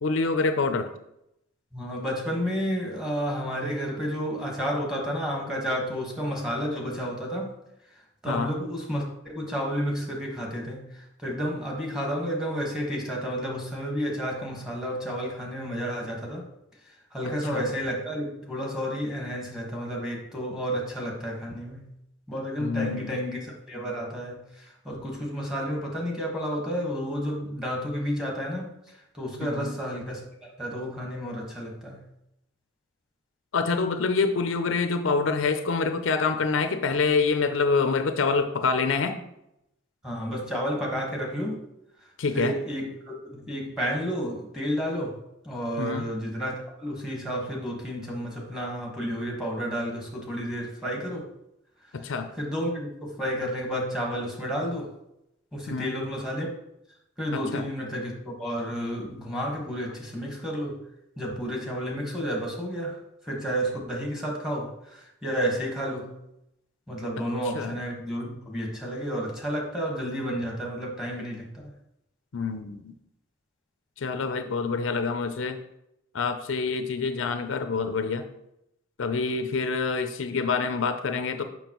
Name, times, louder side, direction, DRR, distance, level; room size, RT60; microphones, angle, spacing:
voice 1, 0.0-0.9 8.3-8.5 17.5-17.7 22.6-23.3 29.4-29.7 33.5-39.2 42.2-42.5 45.8-46.1 51.9-52.3 55.7-56.0 57.3-57.7 67.5-67.8 72.3-73.0 74.0-75.6 76.1-78.2 79.0-81.4, left 4 dB, 70° left, 8 dB, 0.5 m, -26 dB
voice 2, 1.7-7.6 8.2-16.4 17.1-21.9 22.3-32.0 40.0-41.6 42.3-45.2 45.4-51.3 52.0-54.9 55.5-56.5 57.2-60.8 61.2-66.2 66.9-71.7, equal, 5° right, -1 dB, 1.4 m, -31 dB
7.0 x 5.8 x 3.0 m, 0.83 s
head